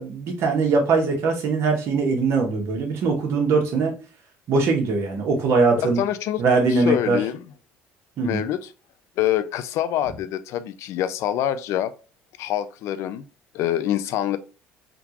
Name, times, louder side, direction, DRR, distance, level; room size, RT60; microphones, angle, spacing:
voice 1, 0.0-3.9 4.5-6.0 6.4-7.2 8.2-8.4, right 4 dB, 60° right, 1.1 m, -21 dB
voice 2, 6.0-6.4 6.7-7.5 8.2-8.7 9.2-11.9 12.4-13.2 13.5-14.4, left 12 dB, 70° left, 0.3 m, -25 dB
3.6 x 2.4 x 2.8 m
cardioid pair, 110°, 5 cm